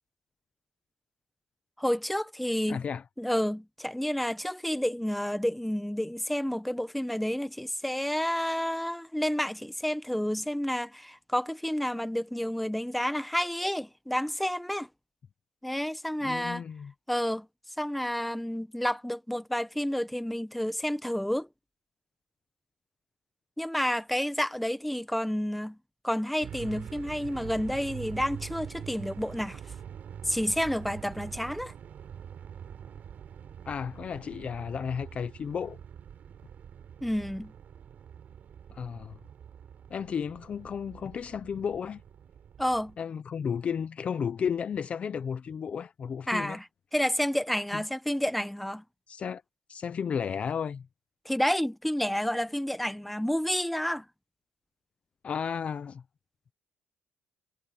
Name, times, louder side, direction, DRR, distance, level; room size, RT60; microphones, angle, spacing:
voice 1, 1.8-2.8 3.2-14.9 15.6-16.6 17.1-17.5 17.8-21.5 23.6-25.8 26.0-29.6 30.2-31.7 37.0-37.5 42.6-43.0 46.3-48.8 51.2-54.0, equal, ahead, 0.8 m, -30 dB
voice 2, 2.7-3.0 16.2-16.9 33.7-35.8 38.7-39.2 39.9-42.0 43.0-46.6 47.7-47.8 49.1-49.4 49.7-50.9 55.2-56.0, left 7 dB, 30° left, 0.5 m, -33 dB
sound 1, 26.4-43.0, right 8 dB, 45° right, 3.8 m, -44 dB
cardioid pair, 170°, 4 cm